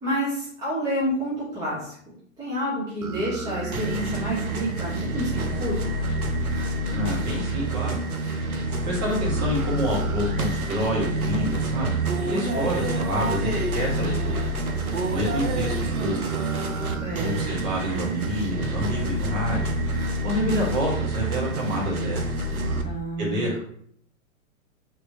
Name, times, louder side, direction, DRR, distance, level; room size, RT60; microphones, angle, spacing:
voice 1, 0.0-1.9 2.4-5.8 17.0-17.5 22.8-23.5, equal, 10° right, -9 dB, 1.0 m, -29 dB
sound 1, 3.0-22.8, right 2 dB, 90° right, 0.6 m, -27 dB
voice 2, 6.9-8.0 8.9-14.5 14.7-16.4 17.2-19.7 20.2-22.2 23.2-23.6, equal, 25° right, -4 dB, 1.2 m, -28 dB
3.4 x 3.0 x 2.7 m, 0.62 s
figure-of-eight pair, 110°, 42 cm